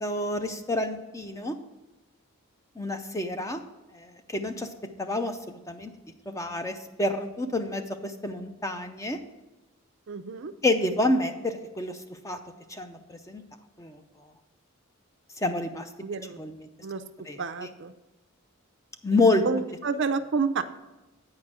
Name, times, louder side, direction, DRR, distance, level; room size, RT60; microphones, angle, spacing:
voice 1, 0.0-1.5 2.8-3.6 3.9-4.7 5.0-5.9 6.3-9.2 10.6-12.0 12.2-12.4 12.7-13.4 13.8-14.0 15.4-15.9 16.4-16.6 17.3-17.7 19.0-19.4, left 2 dB, 15° left, 7 dB, 0.5 m, -28 dB
voice 2, 10.1-10.5 16.0-16.4 16.8-17.0 17.4-17.9 19.4-20.6, right 5 dB, 55° right, 11 dB, 0.5 m, -29 dB
8.6 x 4.8 x 7.4 m, 1.0 s
head